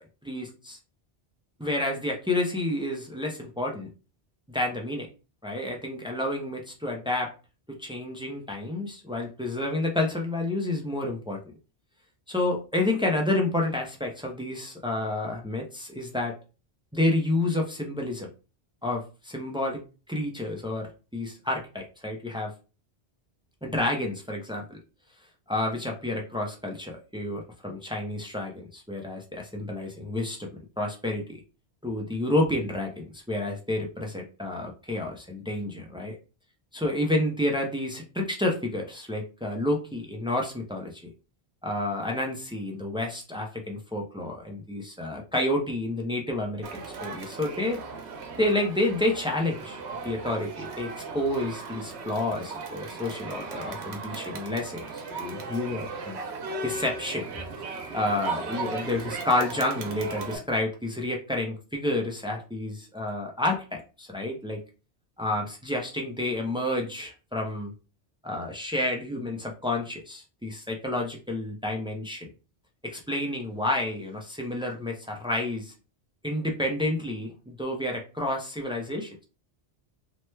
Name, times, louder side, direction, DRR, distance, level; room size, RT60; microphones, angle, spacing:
voice 1, 0.2-0.8 1.6-3.9 4.5-5.1 5.4-7.3 7.7-11.4 12.3-16.3 16.9-18.3 18.8-19.8 20.1-22.5 23.6-24.8 25.5-30.5 30.8-31.4 31.8-36.2 36.7-41.0 41.6-47.8 48.4-49.8 50.0-54.8 55.2-56.2 56.6-57.2 57.9-64.6 65.2-67.7 68.2-72.3 72.8-75.7 76.2-79.2, left 1 dB, 10° right, 0 dB, 0.3 m, -29 dB
Crowd, 46.6-60.4, right 4 dB, 85° right, 0.9 m, -37 dB
2.9 x 2.2 x 3.1 m, 0.33 s
omnidirectional pair, 1.1 m